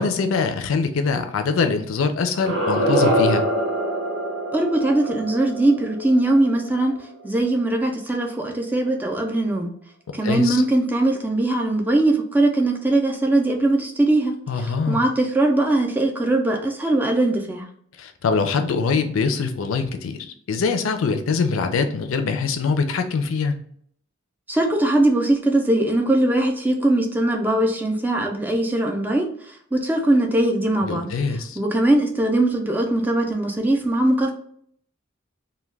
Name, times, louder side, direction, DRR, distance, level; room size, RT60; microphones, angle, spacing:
voice 1, 0.0-3.4 10.2-10.6 14.5-15.0 18.0-20.2 20.5-23.6 30.8-31.6, left 4 dB, 75° left, 7 dB, 0.4 m, -23 dB
sound 1, 2.3-7.2, equal, 65° right, 0.8 m, -24 dB
voice 2, 4.5-9.7 10.1-17.7 24.5-31.1 31.6-34.3, right 1 dB, 10° right, 2 dB, 0.3 m, -21 dB
2.2 x 2.2 x 3.2 m, 0.62 s
head